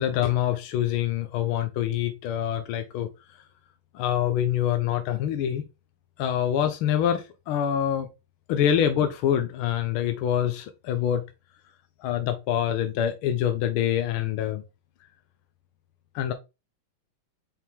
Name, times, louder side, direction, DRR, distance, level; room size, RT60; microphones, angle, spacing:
voice 1, 0.0-3.1 3.9-5.6 6.2-8.1 8.5-11.2 12.0-14.6 16.1-16.3, left 10 dB, 80° left, 1.5 m, -25 dB
5.7 x 4.6 x 3.5 m
omnidirectional pair, 2.3 m